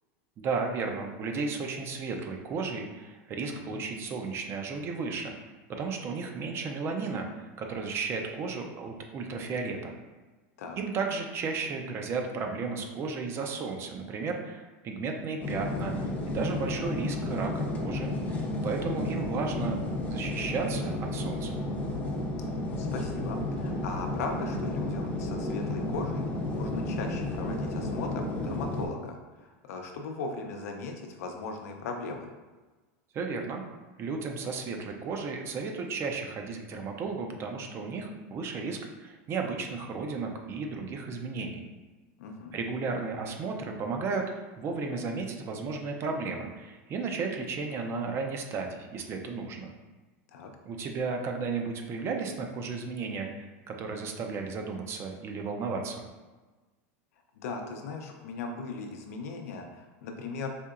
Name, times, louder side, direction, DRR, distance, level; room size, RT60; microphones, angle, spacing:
voice 1, 0.4-5.4 5.7-9.9 10.8-19.8 20.1-21.6 33.1-33.6 34.0-41.6 42.5-49.7 50.7-56.0, right 4 dB, 30° right, 3 dB, 0.5 m, -34 dB
voice 2, 3.5-3.8 10.6-10.8 22.6-26.2 26.5-32.3 42.2-42.6 50.3-50.5 57.4-60.5, left 3 dB, 85° left, 3 dB, 0.6 m, -38 dB
sound 1, 15.4-28.9, left 1 dB, 20° left, 0.6 m, -32 dB
4.2 x 2.8 x 2.4 m, 1.2 s
supercardioid pair, 145°, 8 cm